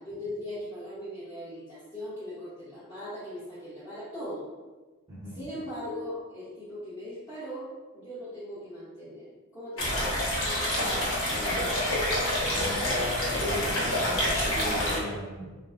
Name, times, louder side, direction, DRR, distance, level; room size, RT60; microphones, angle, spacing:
voice 1, 0.0-4.4 5.3-10.1 10.4-11.2, left 1 dB, 20° left, -13 dB, 0.7 m, -39 dB
voice 2, 5.1-5.4 10.7-12.0 12.5-15.6, equal, 15° right, -9 dB, 0.8 m, -38 dB
sound 1, 9.8-15.0, left 1 dB, 70° left, 0.9 m, -27 dB
3.3 x 2.3 x 2.4 m, 1.3 s
head